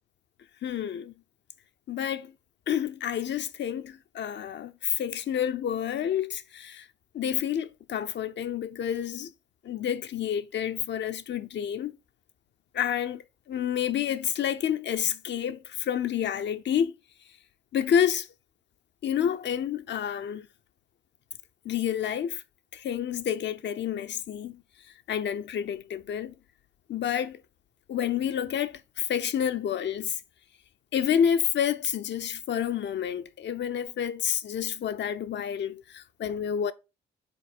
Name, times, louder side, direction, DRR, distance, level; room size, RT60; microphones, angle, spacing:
voice 1, 0.6-1.1 1.9-2.3 2.7-6.9 7.1-9.3 9.6-12.0 12.7-17.0 17.7-18.3 19.0-20.5 21.6-22.4 22.7-24.6 25.1-26.3 26.9-27.4 27.9-30.2 30.9-36.7, left 9 dB, 55° left, 0.7 m, -29 dB
6.9 x 4.2 x 4.0 m
hypercardioid pair, 45°, 21 cm